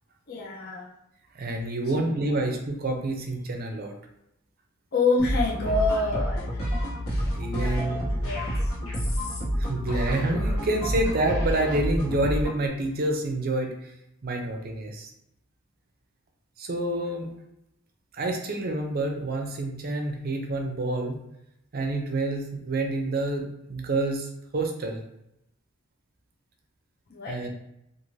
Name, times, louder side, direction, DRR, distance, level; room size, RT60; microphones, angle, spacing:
voice 1, 0.3-0.9 1.8-2.4 4.9-6.6 7.5-8.5 27.1-27.4, left 3 dB, 45° left, -3 dB, 0.5 m, -28 dB
voice 2, 1.3-3.9 7.2-8.3 9.6-13.9 14.2-15.1 16.6-17.3 18.1-21.2 21.7-24.3 24.5-25.0 27.3-27.5, right 2 dB, 45° right, 3 dB, 0.5 m, -28 dB
sound 1, 5.2-12.6, equal, 80° left, 1.1 m, -28 dB
2.5 x 2.5 x 3.1 m, 0.83 s
head